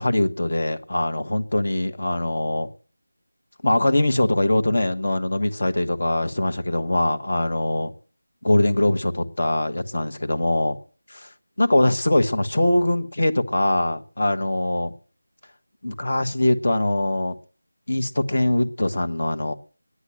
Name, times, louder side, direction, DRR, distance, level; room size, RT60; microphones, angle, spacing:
voice 1, 0.0-2.7 3.6-7.9 8.4-10.8 11.6-14.9 15.8-17.3 17.9-19.5, left 1 dB, 50° left, 7 dB, 1.5 m, -22 dB
10.5 x 9.9 x 9.0 m, 0.41 s
figure-of-eight pair, 170°, 0 cm